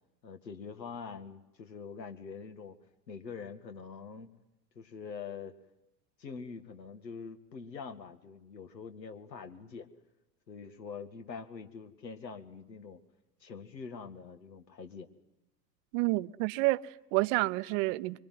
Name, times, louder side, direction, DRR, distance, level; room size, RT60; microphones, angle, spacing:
voice 1, 0.2-2.8 3.1-4.3 4.8-5.6 6.2-9.9 10.5-13.0 13.4-15.1, left 5 dB, 80° left, 2.2 m, -44 dB
voice 2, 15.9-18.2, right 21 dB, 45° right, 0.9 m, -29 dB
25.0 x 23.5 x 9.4 m
figure-of-eight pair, 85°, 50 cm